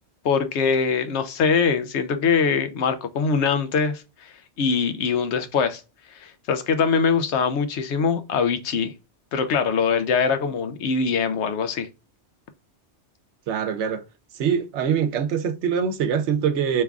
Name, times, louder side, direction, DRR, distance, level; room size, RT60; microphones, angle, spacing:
voice 1, 0.2-5.8 6.2-8.9 9.3-11.9, left 5 dB, 80° left, 0.9 m, -23 dB
voice 2, 13.5-14.0 14.4-16.8, right 7 dB, 80° right, 0.9 m, -23 dB
3.2 x 2.3 x 3.4 m
omnidirectional pair, 1.2 m